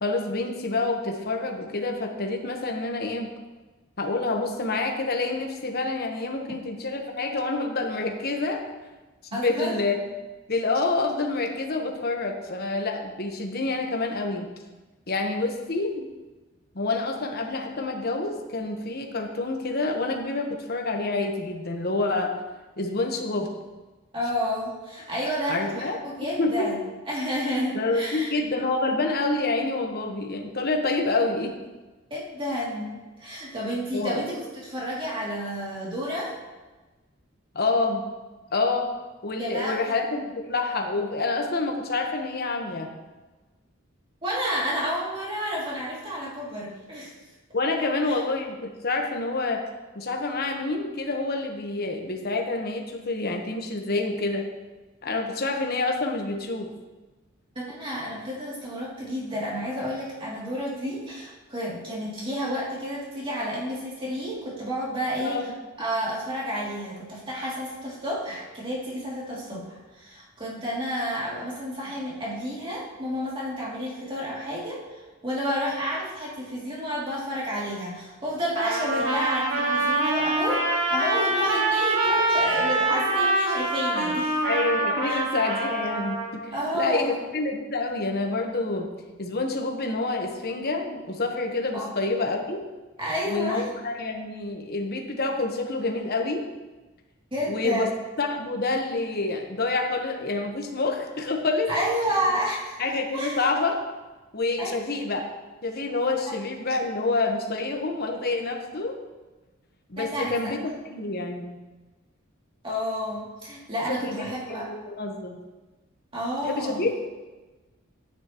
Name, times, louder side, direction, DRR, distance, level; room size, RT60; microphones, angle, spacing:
voice 1, 0.0-3.3 4.0-8.6 9.3-10.0 10.5-14.5 15.1-16.1 16.7-22.3 22.8-23.5 25.5-26.0 26.4-26.7 27.7-31.6 33.9-34.2 37.5-38.0 38.5-38.9 39.2-42.9 47.5-49.6 49.9-54.4 55.0-56.7 65.2-65.5 84.4-88.9 89.2-92.6 93.2-96.4 97.5-97.9 98.2-101.7 102.1-102.2 102.8-103.8 104.3-105.2 105.6-109.0 109.9-110.6 110.9-111.6 114.0-115.4 116.4-116.9, left 3 dB, 50° left, 2 dB, 1.2 m, -27 dB
voice 2, 9.3-9.7 24.1-28.3 32.1-36.3 39.4-39.9 44.2-47.1 47.8-48.2 57.5-65.5 65.8-84.4 85.0-85.2 86.5-87.1 91.7-91.9 93.0-93.7 97.3-97.9 101.7-103.4 104.6-104.8 110.0-110.5 112.6-114.7 116.1-116.9, equal, 25° right, -6 dB, 2.8 m, -30 dB
Trumpet, 78.5-86.4, right 2 dB, 75° right, 2.2 m, -25 dB
12.0 x 9.3 x 3.1 m, 1.2 s
head